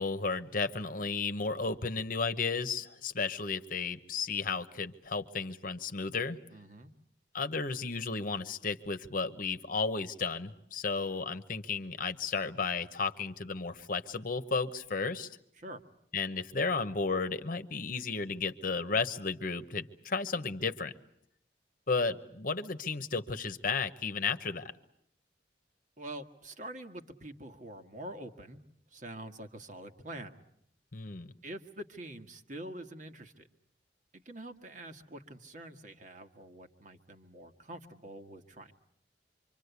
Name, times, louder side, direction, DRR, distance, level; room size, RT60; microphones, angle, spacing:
voice 1, 0.0-6.4 7.3-15.3 16.1-20.9 21.9-24.7 30.9-31.3, left 4 dB, 50° left, 11 dB, 1.1 m, -33 dB
voice 2, 6.5-6.9 15.6-15.8 26.0-28.6 28.9-30.4 31.4-33.5 34.1-38.7, right 1 dB, 45° right, 6 dB, 1.6 m, -45 dB
26.5 x 25.0 x 8.3 m, 0.70 s
head